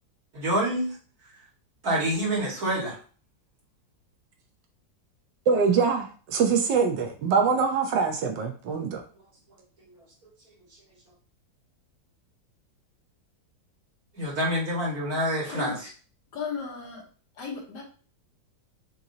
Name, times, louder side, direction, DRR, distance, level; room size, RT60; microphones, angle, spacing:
voice 1, 0.3-0.9 1.8-3.0 14.1-15.9, right 1 dB, 55° right, -5 dB, 2.3 m, -27 dB
voice 2, 5.5-9.0, right 5 dB, 75° right, 4 dB, 1.4 m, -24 dB
voice 3, 16.3-17.0 17.4-17.8, left 5 dB, 70° left, 0 dB, 1.8 m, -35 dB
6.5 x 3.0 x 2.8 m, 0.39 s
omnidirectional pair, 2.0 m